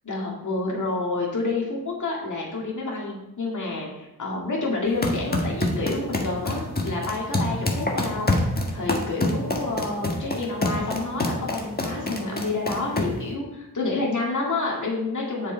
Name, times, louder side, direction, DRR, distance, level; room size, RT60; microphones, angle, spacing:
voice 1, 0.0-15.5, left 3 dB, 50° left, -3 dB, 2.2 m, -29 dB
sound 1, 4.9-13.3, left 1 dB, 25° left, 1.5 m, -27 dB
6.9 x 4.9 x 4.5 m, 0.93 s
cardioid pair, 45°, 39 cm